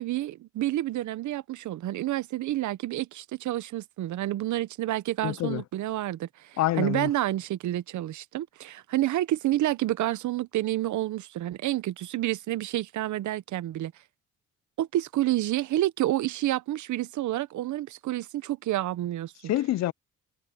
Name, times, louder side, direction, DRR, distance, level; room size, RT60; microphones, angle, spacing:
voice 1, 0.0-13.9 14.8-19.3, right 14 dB, 75° right, 0.9 m, -29 dB
voice 2, 5.2-5.6 6.6-7.1 19.5-19.9, left 14 dB, 60° left, 0.5 m, -26 dB
cardioid pair, 90°, 30 cm